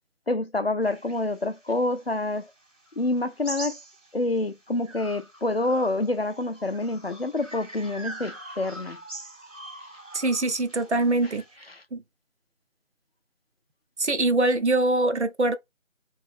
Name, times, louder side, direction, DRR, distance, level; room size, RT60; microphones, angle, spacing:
voice 1, 0.3-2.5 3.0-3.8 4.1-9.0 9.8-9.9 11.2-11.3 11.7-11.8, left 2 dB, 50° left, 0.5 m, -27 dB
sound 1, 0.9-4.4 4.8-11.5, right 2 dB, 80° right, 1.9 m, -43 dB
voice 2, 10.1-11.4 11.9-12.0 14.0-15.6, right 2 dB, 60° right, 0.8 m, -23 dB
3.1 x 2.8 x 3.4 m
figure-of-eight pair, 170°, 38 cm